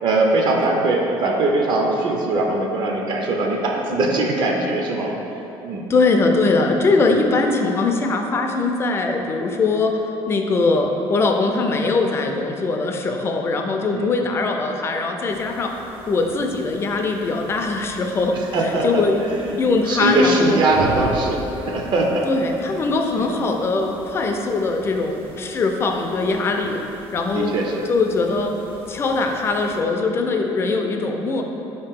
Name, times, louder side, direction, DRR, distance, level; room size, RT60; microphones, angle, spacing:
voice 1, 0.0-5.1 5.6-5.9 7.1-7.2 13.9-14.1 18.3-22.3 23.2-23.3 27.3-27.9, right 2 dB, 50° right, 0 dB, 0.5 m, -21 dB
voice 2, 5.9-10.0 10.3-15.7 16.1-18.4 18.8-19.2 19.6-20.6 22.2-26.8 27.1-27.5 27.9-28.5 28.9-31.4, left 3 dB, 25° left, 3 dB, 0.3 m, -21 dB
sound 1, 15.3-29.8, right 1 dB, 70° right, 0.8 m, -38 dB
4.7 x 2.8 x 3.6 m, 3.0 s
cardioid pair, 140°, 10 cm